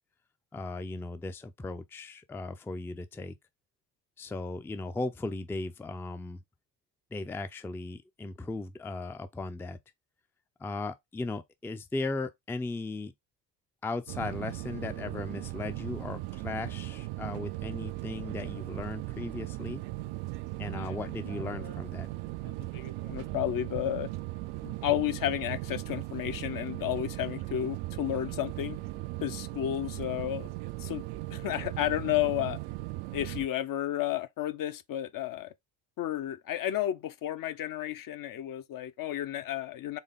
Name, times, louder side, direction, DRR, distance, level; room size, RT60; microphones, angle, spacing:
voice 1, 0.5-3.4 4.2-6.4 7.1-9.8 10.6-13.1 13.8-19.8 20.6-22.1, left 3 dB, 5° left, 0.4 m, -37 dB
sound 1, 14.1-33.5, right 18 dB, 55° right, 0.5 m, -38 dB
voice 2, 22.4-24.1 24.6-28.8 29.2-30.5 30.8-32.6 33.1-35.5 36.0-40.0, left 12 dB, 45° left, 0.6 m, -32 dB
4.1 x 3.5 x 3.5 m
hypercardioid pair, 60°, 47 cm